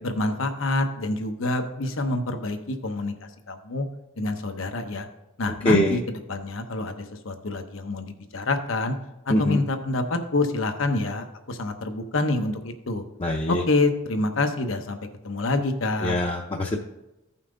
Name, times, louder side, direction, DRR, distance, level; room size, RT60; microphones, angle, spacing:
voice 1, 0.0-3.1 3.5-3.9 4.2-5.1 5.4-9.0 9.4-13.0 13.5-15.0 15.2-16.2, left 2 dB, 80° left, 7 dB, 1.0 m, -27 dB
voice 2, 5.6-6.0 9.3-9.6 13.2-13.6 16.0-16.8, left 1 dB, 30° left, 1 dB, 0.6 m, -23 dB
14.5 x 5.7 x 3.8 m, 0.96 s
head